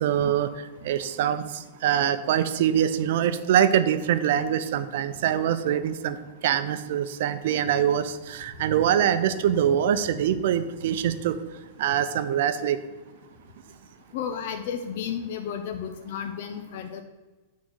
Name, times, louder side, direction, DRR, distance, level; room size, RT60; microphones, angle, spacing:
voice 1, 0.0-0.5 0.8-6.2 6.4-11.4 11.8-12.8, right 10 dB, 65° right, 11 dB, 0.6 m, -24 dB
voice 2, 14.1-17.0, left 8 dB, 60° left, 6 dB, 0.7 m, -33 dB
8.6 x 4.1 x 6.2 m, 1.2 s
supercardioid pair, 150°, 0 cm